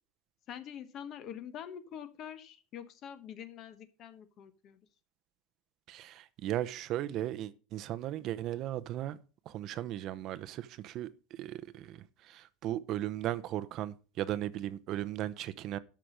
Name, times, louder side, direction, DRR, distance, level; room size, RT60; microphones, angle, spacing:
voice 1, 0.5-4.8, left 9 dB, 35° left, 1.1 m, -45 dB
voice 2, 5.9-9.2 9.5-15.8, right 13 dB, 40° right, 0.7 m, -37 dB
12.5 x 5.9 x 5.1 m
cardioid pair, 170°, 0 cm